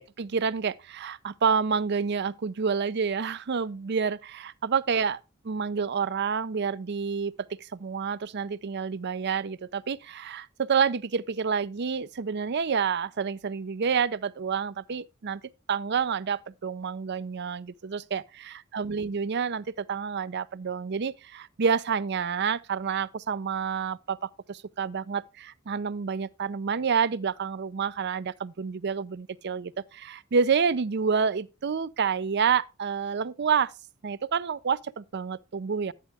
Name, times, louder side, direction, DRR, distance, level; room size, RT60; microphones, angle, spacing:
voice 1, 0.0-5.2 5.4-15.4 15.7-33.7 34.0-35.9, right 6 dB, 55° right, 0.5 m, -28 dB
12.5 x 8.9 x 3.4 m
head